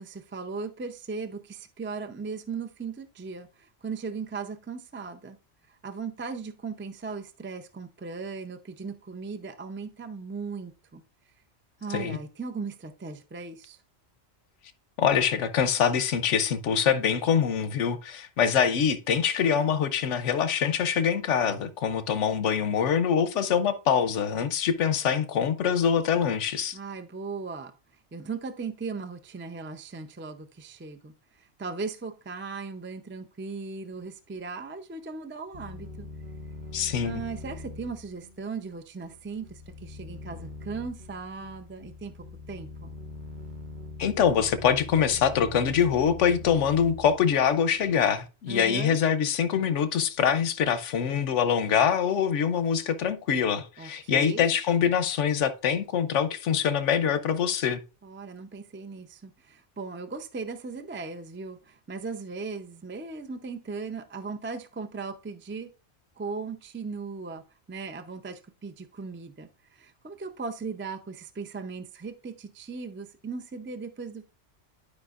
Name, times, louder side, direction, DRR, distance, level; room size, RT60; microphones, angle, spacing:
voice 1, 0.0-5.4 5.7-11.0 11.8-13.8 26.7-36.1 37.0-42.1 42.5-42.9 48.5-49.0 53.8-54.5 58.0-65.7 66.2-67.4 67.7-74.2, right 4 dB, 20° right, 0.3 m, -38 dB
voice 2, 15.0-26.8 36.7-37.2 44.0-57.8, left 7 dB, 90° left, 1.1 m, -24 dB
sound 1, 35.5-48.0, left 2 dB, 45° right, 0.9 m, -42 dB
12.0 x 5.1 x 2.4 m
omnidirectional pair, 1.2 m